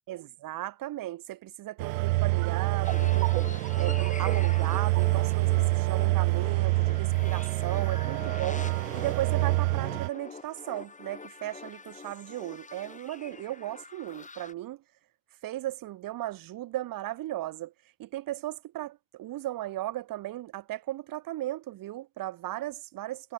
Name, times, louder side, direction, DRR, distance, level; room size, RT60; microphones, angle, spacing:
voice 1, 0.1-3.4 3.8-8.7 8.9-14.8 15.4-17.7 18.0-23.3, right 15 dB, 55° right, 4.8 m, -36 dB
sound 1, 1.8-10.1, right 23 dB, 85° right, 1.1 m, -26 dB
sound 2, 2.8-14.5, left 4 dB, 20° left, 5.0 m, -44 dB
supercardioid pair, 105°, 41 cm